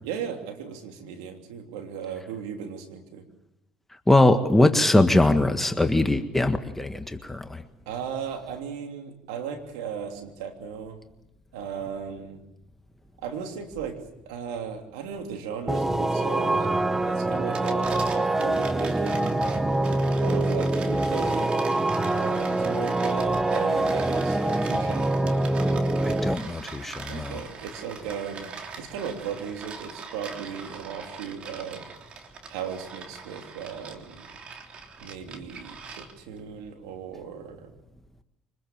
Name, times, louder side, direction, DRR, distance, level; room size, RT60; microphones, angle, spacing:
voice 1, 0.0-3.2 7.9-11.0 11.5-12.4 13.2-14.0 14.2-19.6 20.2-21.6 22.0-25.1 27.1-31.9 32.5-34.3 35.0-37.7, right 7 dB, 90° right, 4 dB, 3.1 m, -36 dB
voice 2, 4.1-7.6 26.0-27.4, left 2 dB, 10° left, 7 dB, 1.7 m, -21 dB
sound 1, 15.7-26.3, right 2 dB, 10° right, 1.1 m, -25 dB
sound 2, 17.4-36.4, right 5 dB, 50° right, 3.3 m, -42 dB
25.0 x 20.5 x 7.6 m, 0.88 s
supercardioid pair, 80°, 2 cm